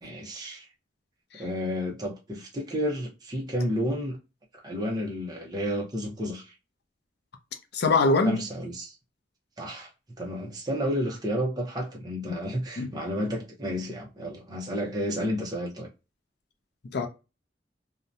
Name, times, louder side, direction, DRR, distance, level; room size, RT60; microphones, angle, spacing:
voice 1, 0.0-0.7 1.4-4.2 4.6-6.5 8.2-8.9 9.6-9.9 10.2-15.9, equal, 20° right, 0.7 m, -31 dB
voice 2, 7.7-8.4 12.3-12.4 12.8-12.9 16.8-17.1, left 3 dB, 60° left, 0.5 m, -24 dB
2.7 x 2.1 x 2.4 m
head